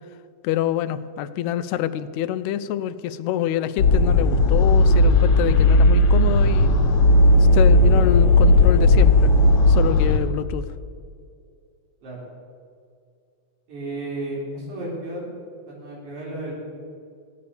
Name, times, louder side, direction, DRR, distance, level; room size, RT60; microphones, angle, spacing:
voice 1, 0.4-6.8 7.4-9.3 9.7-10.7, left 11 dB, 80° left, 13 dB, 1.8 m, -26 dB
sound 1, 3.8-10.2, left 2 dB, 60° left, 2.0 m, -15 dB
voice 2, 13.7-15.3 15.7-16.5, right 1 dB, 80° right, -4 dB, 5.0 m, -33 dB
15.5 x 9.7 x 6.9 m, 2.3 s
omnidirectional pair, 3.3 m